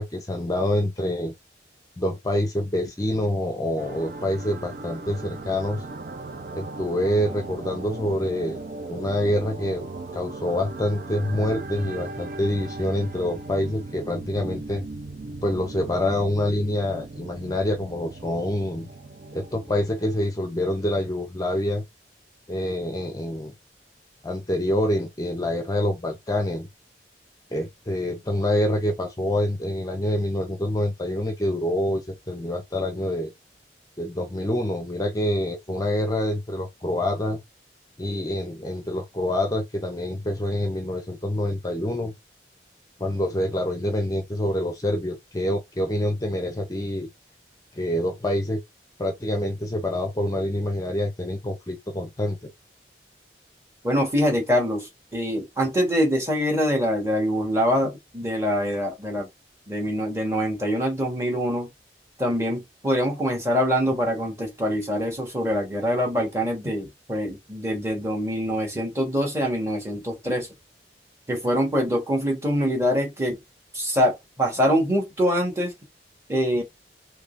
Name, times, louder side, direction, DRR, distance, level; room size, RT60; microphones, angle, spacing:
voice 1, 0.0-1.3 2.0-5.8 6.5-8.6 8.9-9.9 10.1-14.8 15.4-18.9 19.3-21.8 22.5-23.5 24.2-26.7 27.5-33.3 34.0-37.4 38.0-42.1 43.0-47.1 47.7-48.6 49.0-52.5, left 1 dB, 20° left, 0.6 m, -26 dB
sound 1, 3.8-20.2, right 2 dB, 50° right, 0.5 m, -38 dB
voice 2, 53.8-59.3 59.7-61.7 62.2-70.5 71.3-73.4 73.7-75.7 76.3-76.6, equal, 15° right, 1.3 m, -24 dB
3.6 x 3.2 x 2.5 m
head